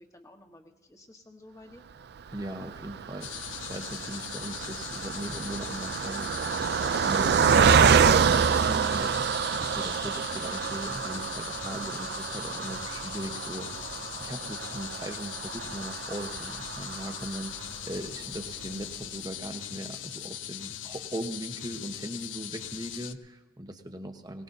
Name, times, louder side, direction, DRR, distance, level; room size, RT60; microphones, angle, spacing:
voice 1, 0.0-1.8 11.0-11.3, left 1 dB, 15° left, 4 dB, 1.2 m, -52 dB
voice 2, 2.3-24.4, right 1 dB, 20° right, 6 dB, 1.0 m, -39 dB
Car passing by, 2.3-17.8 18.3-18.4 18.7-18.9, right 6 dB, 55° right, 0.4 m, -27 dB
sound 1, 3.2-23.1, left 12 dB, 65° left, 0.5 m, -40 dB
22.5 x 18.5 x 2.7 m, 1.1 s
head